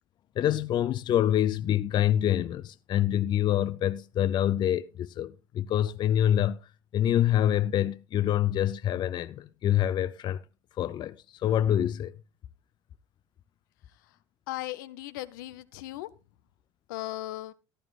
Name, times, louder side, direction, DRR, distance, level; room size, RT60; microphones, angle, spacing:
voice 1, 0.4-6.6 6.9-10.4 10.8-11.1 11.4-12.1, left 11 dB, 45° left, 0.5 m, -26 dB
voice 2, 13.9-14.2 14.5-16.1 16.9-17.5, left 16 dB, 75° left, 0.8 m, -37 dB
14.5 x 12.0 x 2.4 m
hypercardioid pair, 70°, 11 cm